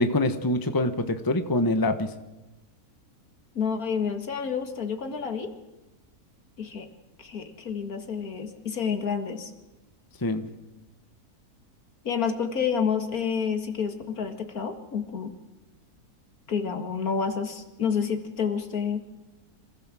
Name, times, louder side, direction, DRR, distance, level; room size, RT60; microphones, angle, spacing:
voice 1, 0.0-2.1 10.2-10.4, left 1 dB, 15° left, 9 dB, 1.1 m, -25 dB
voice 2, 3.6-5.5 6.6-6.9 7.2-9.5 12.0-15.3 16.5-19.1, left 6 dB, 70° left, 7 dB, 2.3 m, -29 dB
25.5 x 16.0 x 7.6 m, 1.1 s
omnidirectional pair, 1.6 m